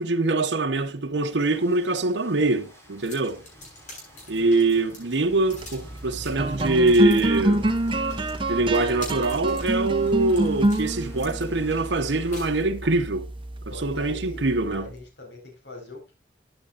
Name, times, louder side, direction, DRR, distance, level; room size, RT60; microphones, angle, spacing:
voice 1, 0.0-3.4 4.3-7.7 8.5-13.3 13.7-14.9, right 2 dB, 85° right, 1.0 m, -23 dB
Rain, 1.4-12.6, equal, 15° left, 4.7 m, -48 dB
sound 1, 3.0-13.0, left 2 dB, 45° left, 7.9 m, -45 dB
sound 2, 5.4-15.0, right 1 dB, 30° right, 1.2 m, -28 dB
voice 2, 13.7-16.1, left 2 dB, 80° left, 4.7 m, -42 dB
14.5 x 9.8 x 2.5 m
head